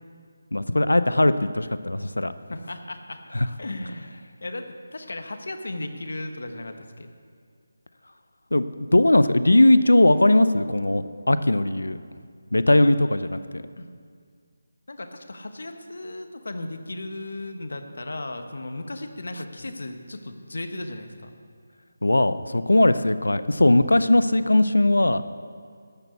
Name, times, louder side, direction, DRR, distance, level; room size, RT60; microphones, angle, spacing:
voice 1, 0.5-2.3 3.3-3.5 8.5-12.0 12.5-13.6 22.0-25.2, left 1 dB, 90° left, 13 dB, 0.6 m, -19 dB
voice 2, 2.5-3.2 3.6-4.1 4.4-7.1 12.8-12.9 13.8-13.9 14.9-21.3, left 2 dB, 70° left, 6 dB, 1.2 m, -36 dB
13.5 x 6.0 x 8.2 m, 2.1 s
figure-of-eight pair, 160°, 0 cm